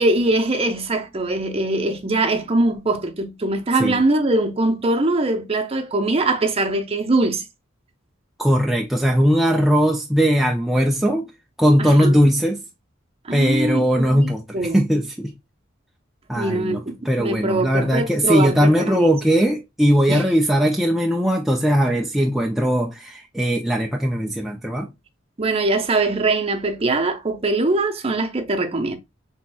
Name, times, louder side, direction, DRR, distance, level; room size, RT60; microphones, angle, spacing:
voice 1, 0.0-7.4 11.8-12.2 13.2-14.3 14.5-14.8 16.3-16.9 17.2-19.1 20.1-20.3 25.4-29.0, right 2 dB, 30° right, 0.7 m, -22 dB
voice 2, 8.4-11.3 11.6-12.6 13.3-15.3 16.3-24.9, equal, ahead, 0.4 m, -19 dB
5.7 x 3.5 x 2.2 m
head